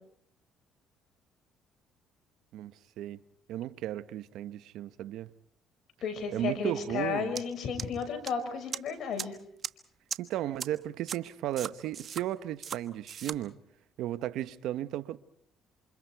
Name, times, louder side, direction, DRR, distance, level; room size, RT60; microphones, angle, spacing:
voice 1, 3.5-5.3 6.3-7.4 10.2-13.5 14.0-15.2, right 13 dB, 80° right, 0.9 m, -35 dB
voice 2, 6.0-9.4, left 6 dB, 60° left, 5.9 m, -33 dB
sound 1, 7.4-7.5 7.8-8.3 8.7-8.8 9.2-9.3 9.6-9.7 10.1-10.2 10.6-10.7 11.1-11.2 11.6-12.2 12.6-12.8 13.1-13.4, right 7 dB, 50° right, 1.4 m, -36 dB
28.5 x 27.0 x 4.6 m
cardioid pair, 85°, 0 cm